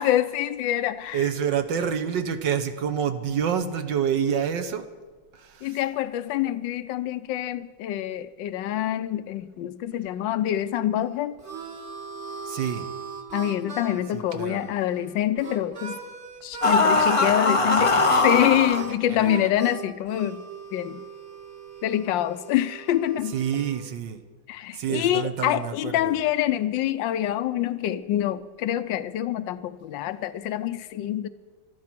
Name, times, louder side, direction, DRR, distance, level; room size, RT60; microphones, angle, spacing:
voice 1, 0.0-1.2 5.6-11.4 13.3-16.0 16.4-20.4 20.7-21.0 21.8-23.4 24.5-31.3, left 12 dB, 75° left, 1.3 m, -26 dB
voice 2, 1.1-4.9 5.3-5.8 12.5-12.9 14.1-14.7 16.7-18.0 18.4-18.5 18.8-19.5 23.3-24.2 24.7-26.2, right 8 dB, 65° right, 1.6 m, -28 dB
Harmonica, 10.9-16.7 17.0-17.5 17.9-23.9, right 5 dB, 35° right, 1.7 m, -39 dB
sound 1, 16.6-18.8, left 3 dB, 55° left, 0.3 m, -20 dB
18.0 x 13.0 x 6.0 m
omnidirectional pair, 2.2 m